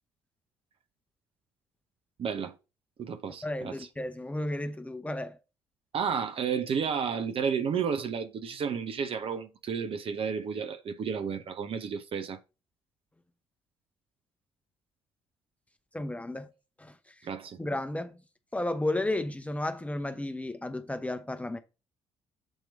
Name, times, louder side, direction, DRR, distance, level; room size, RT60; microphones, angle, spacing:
voice 1, 2.2-2.6 3.0-3.7 5.9-12.4 17.2-17.6, right 6 dB, 40° right, 0.7 m, -32 dB
voice 2, 3.4-5.4 15.9-16.5 16.8-17.1 17.6-18.2 18.5-21.6, left 1 dB, 10° left, 0.7 m, -33 dB
7.2 x 3.0 x 5.1 m
figure-of-eight pair, 45°, 14 cm